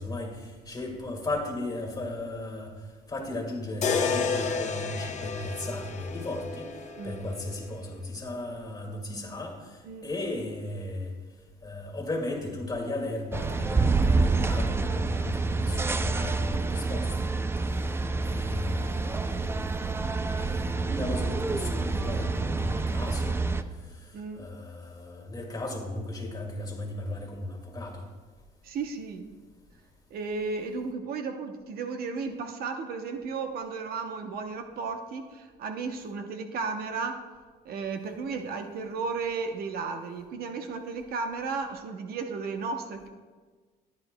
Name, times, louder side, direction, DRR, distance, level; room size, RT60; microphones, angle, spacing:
voice 1, 0.0-2.7 3.1-11.1 11.6-17.3 17.7-17.9 18.2-19.8 20.3-28.0, left 2 dB, 20° left, 1 dB, 2.0 m, -36 dB
sound 1, 3.8-7.9, left 5 dB, 45° left, 0.8 m, -31 dB
sound 2, 13.3-23.6, right 3 dB, 15° right, 0.4 m, -27 dB
voice 2, 24.1-24.5 28.6-29.3 30.1-37.2 37.6-43.1, right 4 dB, 65° right, 6 dB, 0.8 m, -34 dB
13.5 x 9.7 x 2.2 m, 1.4 s
cardioid pair, 110°, 17 cm